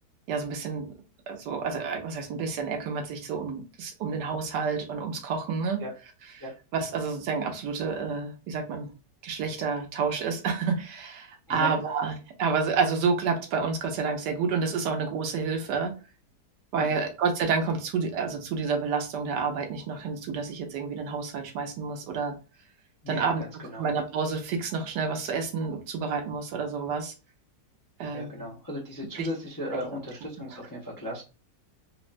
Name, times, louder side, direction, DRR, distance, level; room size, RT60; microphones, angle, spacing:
voice 1, 0.3-0.9 1.3-5.8 6.7-8.9 9.2-15.9 16.7-22.3 23.1-23.4 23.8-27.1 28.0-28.5 29.1-29.3, right 5 dB, 80° right, 5 dB, 1.3 m, -29 dB
voice 2, 23.0-23.9 28.1-31.2, left 1 dB, 30° left, -5 dB, 0.4 m, -36 dB
3.7 x 2.1 x 2.5 m, 0.32 s
omnidirectional pair, 1.8 m